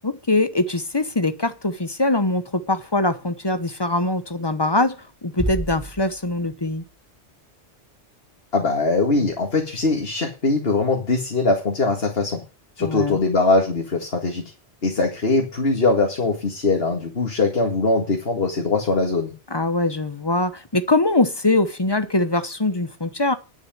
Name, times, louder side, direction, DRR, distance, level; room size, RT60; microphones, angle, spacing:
voice 1, 0.0-6.8 12.8-13.2 19.5-23.3, left 2 dB, 25° left, 0.9 m, -22 dB
sound 1, 5.4-7.3, right 1 dB, 5° right, 0.9 m, -32 dB
voice 2, 8.5-12.4 12.8-14.4 14.8-19.3, left 3 dB, 60° left, 2.3 m, -21 dB
10.5 x 6.4 x 9.1 m
omnidirectional pair, 1.2 m